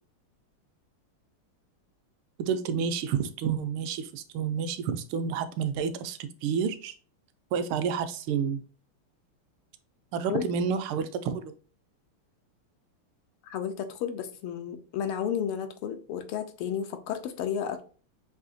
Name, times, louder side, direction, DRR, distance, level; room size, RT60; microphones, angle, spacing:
voice 1, 2.4-6.9 7.5-8.6 10.1-11.5, right 6 dB, 75° right, 1.4 m, -29 dB
voice 2, 13.4-17.8, left 8 dB, 85° left, 1.6 m, -32 dB
6.3 x 2.8 x 2.5 m
omnidirectional pair, 2.4 m